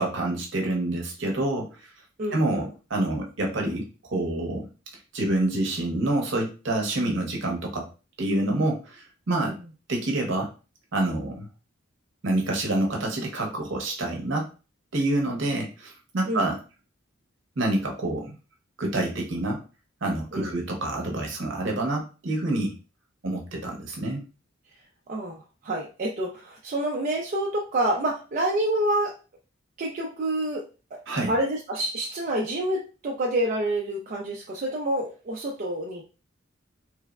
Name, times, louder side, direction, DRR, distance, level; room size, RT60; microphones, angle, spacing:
voice 1, 0.0-1.9 2.3-4.7 5.1-7.9 8.2-9.6 9.9-10.5 10.9-11.5 12.2-14.5 14.9-16.6 17.6-18.3 18.8-19.6 20.0-22.7 23.2-24.2 31.1-31.3, right 2 dB, 60° right, 1 dB, 0.7 m, -27 dB
voice 2, 2.2-2.6 9.4-9.5 16.3-16.5 20.3-20.5 25.1-29.1 29.8-31.0 31.3-36.0, right 1 dB, 40° right, -1 dB, 0.4 m, -28 dB
3.2 x 2.0 x 2.3 m, 0.33 s
head